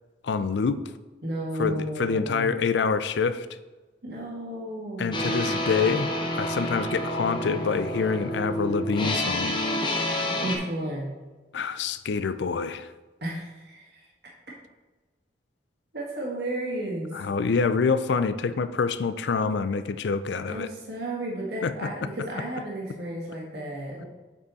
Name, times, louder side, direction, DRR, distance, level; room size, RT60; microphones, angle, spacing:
voice 1, 0.2-0.8 1.6-3.5 5.0-6.1 6.4-9.6 11.5-12.9 17.1-20.7 21.6-21.9, left 5 dB, 75° left, 12 dB, 0.4 m, -26 dB
voice 2, 1.2-2.5 4.0-5.4 10.4-11.1 13.2-14.1 15.9-17.1 20.5-24.0, right 1 dB, 65° right, -3 dB, 1.7 m, -33 dB
sound 1, 5.1-10.6, left 1 dB, 25° left, 0.9 m, -29 dB
7.0 x 5.5 x 4.1 m, 1.2 s
head